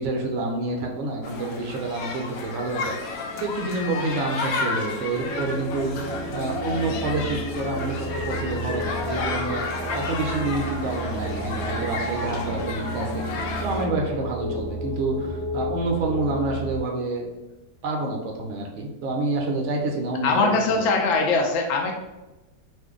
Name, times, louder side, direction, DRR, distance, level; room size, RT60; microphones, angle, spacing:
voice 1, 0.0-3.1 3.4-13.3 13.6-17.3 17.8-20.9, right 2 dB, 70° right, 0 dB, 0.7 m, -28 dB
sound 1, 1.2-13.9, left 3 dB, 70° left, 0.9 m, -32 dB
sound 2, 5.2-16.8, right 1 dB, 35° left, 1.0 m, -32 dB
voice 2, 20.2-21.9, left 3 dB, 85° left, 2 dB, 0.6 m, -21 dB
2.5 x 2.5 x 3.6 m, 1.0 s
omnidirectional pair, 1.8 m